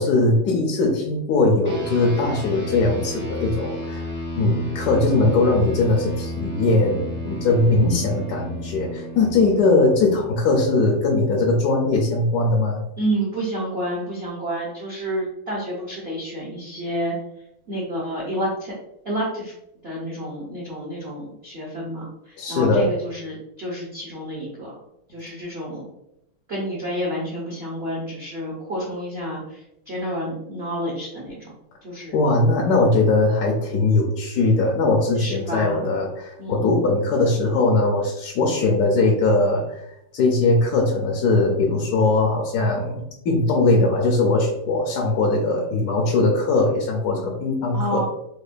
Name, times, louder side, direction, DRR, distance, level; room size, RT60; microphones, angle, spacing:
voice 1, 0.0-4.0 4.4-12.8 22.4-22.9 32.1-39.8 40.1-48.0, left 2 dB, 75° left, 0 dB, 0.9 m, -20 dB
sound 1, 1.6-11.4, equal, 20° right, 0.3 m, -33 dB
voice 2, 13.0-17.1 17.7-18.8 19.0-19.5 19.8-24.7 25.1-25.8 26.5-31.5 31.8-32.1 35.2-35.9 36.4-36.7 47.7-48.0, right 1 dB, 75° right, -4 dB, 0.5 m, -29 dB
5.1 x 2.2 x 2.5 m, 0.81 s
omnidirectional pair, 2.2 m